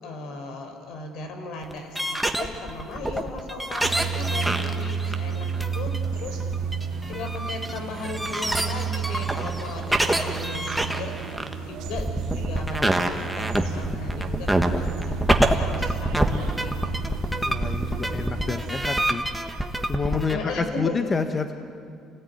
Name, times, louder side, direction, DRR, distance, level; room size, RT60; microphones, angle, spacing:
voice 1, 0.0-6.8 7.1-11.2 11.7-12.1 12.3-16.7 17.1-17.2 20.3-21.1, left 3 dB, 70° left, 5 dB, 4.4 m, -37 dB
sound 1, 1.6-20.3, right 1 dB, ahead, 1.4 m, -26 dB
sound 2, 3.8-18.8, right 6 dB, 80° right, 2.5 m, -32 dB
voice 2, 17.4-19.2 19.9-21.5, left 4 dB, 20° left, 7 dB, 1.0 m, -28 dB
28.5 x 18.5 x 9.3 m, 2.4 s
cardioid pair, 155°, 0 cm